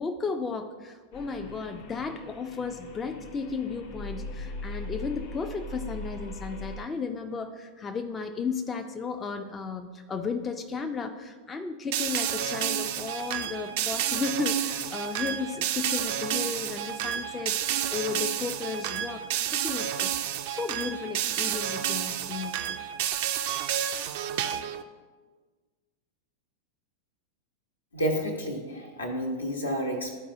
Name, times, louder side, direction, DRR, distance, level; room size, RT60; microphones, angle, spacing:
voice 1, 0.0-19.2 19.5-20.1 20.5-22.6, left 5 dB, 20° left, 6 dB, 0.4 m, -34 dB
sound 1, 1.1-6.9, left 2 dB, 55° left, 0.7 m, -40 dB
sound 2, 11.9-24.8, right 10 dB, 50° right, 0.4 m, -30 dB
voice 2, 27.9-30.2, equal, 75° left, 1 dB, 1.1 m, -30 dB
11.5 x 4.5 x 2.7 m, 1.4 s
figure-of-eight pair, 90°, 0 cm